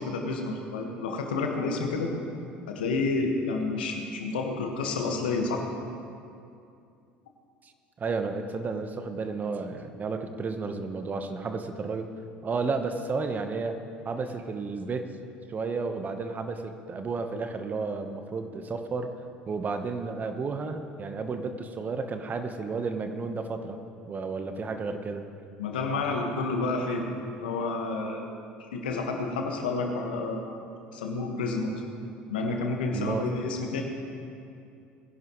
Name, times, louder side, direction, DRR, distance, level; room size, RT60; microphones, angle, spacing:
voice 1, 0.0-2.1 2.7-5.6 25.6-27.1 27.4-28.3 28.7-30.6 30.9-31.7 32.3-33.8, left 3 dB, 80° left, 2 dB, 1.6 m, -29 dB
voice 2, 8.0-12.1 12.4-13.8 14.0-15.1 15.5-19.1 19.5-25.2 32.9-33.3, right 4 dB, 35° right, 7 dB, 1.1 m, -32 dB
21.0 x 11.0 x 3.2 m, 2.5 s
hypercardioid pair, 65°, 5 cm